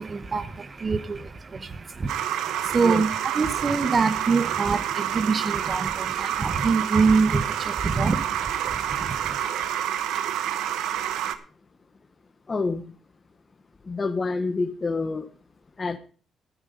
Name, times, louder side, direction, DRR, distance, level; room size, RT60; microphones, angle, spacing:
voice 1, 0.0-9.4, right 4 dB, 35° right, 1.1 m, -25 dB
sound 1, 2.1-11.4, right 10 dB, 85° right, 1.0 m, -28 dB
voice 2, 12.5-12.8 13.9-15.3 15.8-16.0, left 3 dB, 30° left, 1.2 m, -27 dB
12.5 x 9.9 x 5.2 m
cardioid pair, 90°, 0 cm